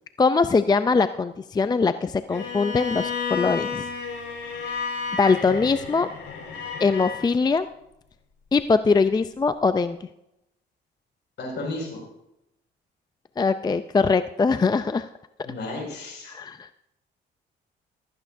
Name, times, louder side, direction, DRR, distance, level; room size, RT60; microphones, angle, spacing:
voice 1, 0.2-3.8 5.1-6.1 6.8-7.7 8.5-10.0 13.4-15.1 16.3-16.8, left 4 dB, 20° left, 11 dB, 0.4 m, -22 dB
Bowed string instrument, 2.3-7.2, left 5 dB, 75° left, 4.8 m, -31 dB
voice 2, 11.4-12.0 15.4-16.4, left 2 dB, 60° left, 1 dB, 5.4 m, -33 dB
15.0 x 13.5 x 2.6 m, 0.84 s
cardioid pair, 90°, 20 cm